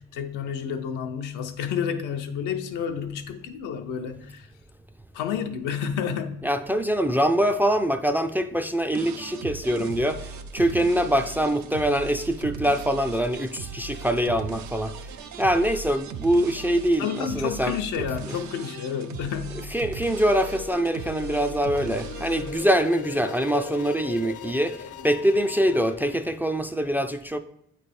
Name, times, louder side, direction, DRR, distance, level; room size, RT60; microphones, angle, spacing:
voice 1, 0.0-4.5 5.1-6.5 17.0-19.7, left 7 dB, 90° left, 0.7 m, -30 dB
voice 2, 6.4-15.1 15.4-17.7 18.2-18.4 19.7-27.4, equal, 5° right, 0.3 m, -24 dB
sound 1, 8.9-22.7, right 6 dB, 70° right, 0.5 m, -38 dB
sound 2, 20.2-26.2, left 8 dB, 50° left, 0.5 m, -39 dB
8.3 x 3.3 x 4.2 m
cardioid pair, 90°, 30 cm